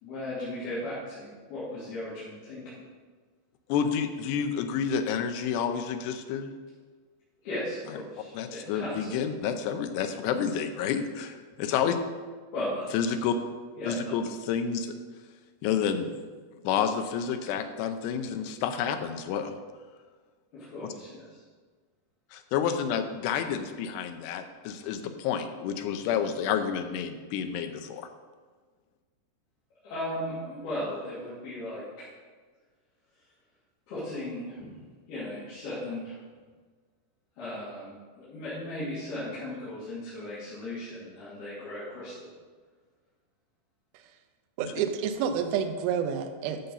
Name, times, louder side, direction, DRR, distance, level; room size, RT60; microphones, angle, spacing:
voice 1, 0.0-2.8 7.4-9.2 12.5-13.1 13.8-14.1 20.5-21.4 29.8-32.1 33.9-34.7 35.1-36.2 37.4-42.3, left 1 dB, 65° left, -12 dB, 4.5 m, -36 dB
voice 2, 3.7-6.5 8.4-12.0 12.9-13.4 13.9-14.9 15.6-16.1 16.6-19.5 22.3-28.1 44.6-44.7, left 7 dB, 80° left, 7 dB, 2.8 m, -29 dB
voice 3, 44.6-46.6, right 7 dB, 80° right, 6 dB, 2.3 m, -29 dB
12.5 x 6.8 x 4.1 m, 1.5 s
omnidirectional pair, 5.0 m